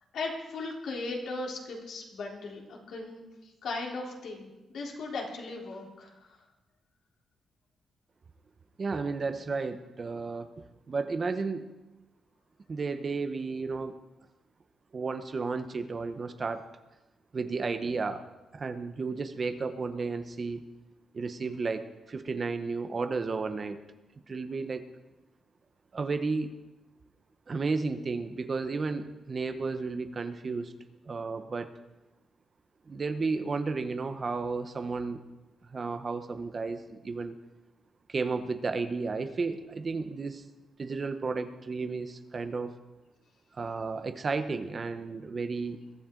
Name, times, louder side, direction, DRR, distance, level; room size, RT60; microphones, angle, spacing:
voice 1, 0.1-6.4, left 3 dB, 70° left, -2 dB, 3.5 m, -38 dB
voice 2, 8.8-10.5 10.9-11.6 12.7-13.9 14.9-16.6 17.3-18.2 18.5-20.6 21.1-23.8 24.3-24.9 25.9-26.5 27.5-30.7 31.1-31.7 32.9-35.2 35.6-37.4 38.1-40.4 40.8-42.7 43.5-45.8, right 4 dB, 30° right, 9 dB, 0.9 m, -33 dB
22.0 x 13.5 x 3.8 m, 1.1 s
wide cardioid pair, 155°, 0 cm